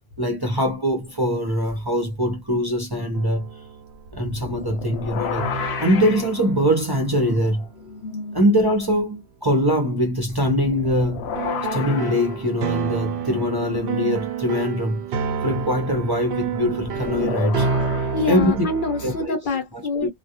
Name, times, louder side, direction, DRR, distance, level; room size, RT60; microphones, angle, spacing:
voice 1, 0.2-3.5 4.1-5.5 5.8-7.7 8.3-11.3 11.7-15.0 15.4-17.7 18.3-18.6 19.0-19.4 20.0-20.1, equal, 25° right, 0.6 m, -22 dB
sound 1, 1.1-1.2 3.1-4.2 5.4-8.7 11.4-19.3, right 6 dB, 90° right, 0.9 m, -30 dB
sound 2, 4.1-8.6 8.9-9.0 10.3-14.3 16.4-19.3, left 5 dB, 85° left, 0.9 m, -33 dB
voice 2, 18.0-20.1, left 3 dB, 55° left, 0.9 m, -26 dB
2.3 x 2.0 x 2.8 m
omnidirectional pair, 1.1 m